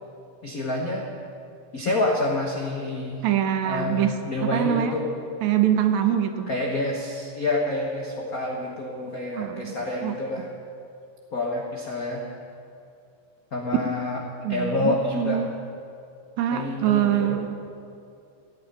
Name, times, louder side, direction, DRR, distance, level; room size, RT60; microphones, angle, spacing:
voice 1, 0.4-1.1 1.7-3.2 3.6-5.0 6.5-10.5 11.3-12.2 13.5-14.2 14.5-15.4 16.5-17.4, left 2 dB, 60° left, -1 dB, 0.9 m, -28 dB
voice 2, 3.2-4.9 5.4-6.5 9.3-10.2 14.4-15.5 16.4-17.5, right 10 dB, 70° right, 8 dB, 1.9 m, -24 dB
15.5 x 9.9 x 9.4 m, 2.5 s
omnidirectional pair, 3.9 m